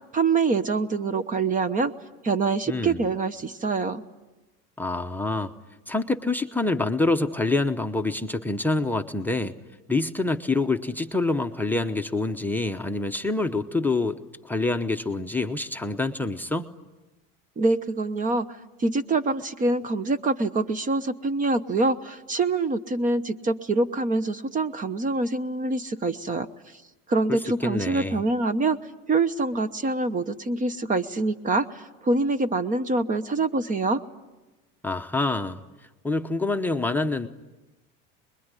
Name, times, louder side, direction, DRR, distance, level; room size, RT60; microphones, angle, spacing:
voice 1, 0.1-1.9 2.2-4.0 17.6-26.5 27.1-28.8 29.1-34.0, right 3 dB, 25° right, 14 dB, 1.0 m, -25 dB
voice 2, 2.7-3.0 4.8-5.5 5.9-9.5 9.9-14.2 14.4-16.7 27.3-28.2 34.8-35.6 36.0-37.3, left 2 dB, 5° left, 5 dB, 0.9 m, -26 dB
27.5 x 21.5 x 9.8 m, 1.1 s
supercardioid pair, 125°, 30 cm